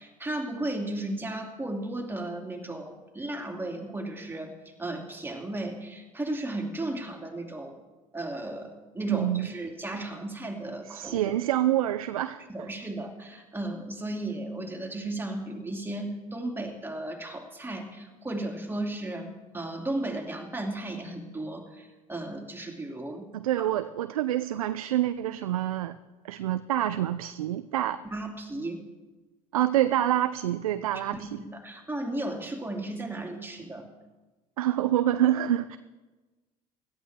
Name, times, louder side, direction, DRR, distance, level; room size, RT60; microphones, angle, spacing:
voice 1, 0.0-4.5 4.8-7.8 8.1-11.2 12.5-23.3 23.6-23.7 28.0-28.8 31.1-33.9, right 1 dB, 10° right, 2 dB, 2.7 m, -35 dB
voice 2, 9.1-9.5 10.9-12.4 23.3-26.0 26.2-28.0 29.5-31.4 34.6-35.8, right 12 dB, 85° right, 12 dB, 0.5 m, -27 dB
17.0 x 13.0 x 3.6 m, 1.2 s
hypercardioid pair, 70°, 18 cm